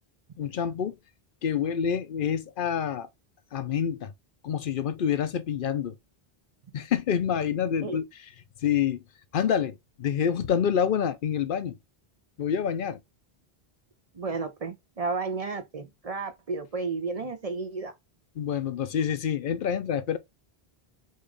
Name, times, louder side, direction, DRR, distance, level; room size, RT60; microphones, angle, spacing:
voice 1, 0.4-1.0 1.4-3.1 3.5-4.1 4.4-5.9 6.7-8.0 8.6-9.0 9.3-11.7 12.4-13.0 18.4-20.2, left 8 dB, 60° left, 0.7 m, -27 dB
voice 2, 14.1-17.9, right 4 dB, 45° right, 0.6 m, -32 dB
5.1 x 2.4 x 3.8 m
omnidirectional pair, 1.1 m